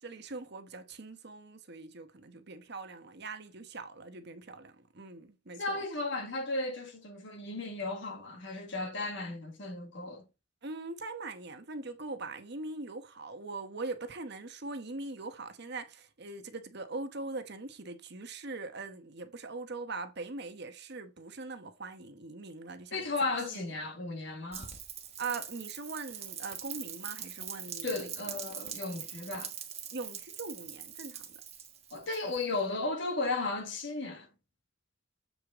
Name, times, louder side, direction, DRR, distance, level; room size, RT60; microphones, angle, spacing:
voice 1, 0.0-5.8 10.6-23.7 25.2-28.3 29.9-31.4, right 3 dB, 55° right, 1.1 m, -42 dB
voice 2, 5.6-10.2 22.9-24.7 27.8-29.5 31.9-34.3, left 3 dB, 60° left, 1.6 m, -35 dB
Rain, 24.5-32.6, right 9 dB, 30° right, 1.3 m, -43 dB
7.8 x 4.9 x 3.6 m
head